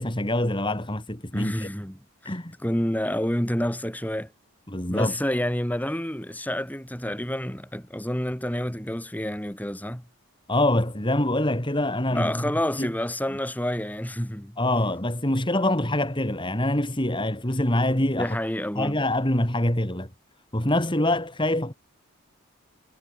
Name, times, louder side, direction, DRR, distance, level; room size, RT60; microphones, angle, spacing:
voice 1, 0.0-1.7 2.2-2.6 4.7-5.1 10.5-12.5 12.8-12.9 14.6-18.4 18.7-20.1 20.5-21.7, left 1 dB, 25° left, 3.0 m, -25 dB
voice 2, 1.3-2.3 2.6-4.3 4.9-10.0 12.1-14.6 18.2-19.0, equal, 5° left, 3.1 m, -28 dB
head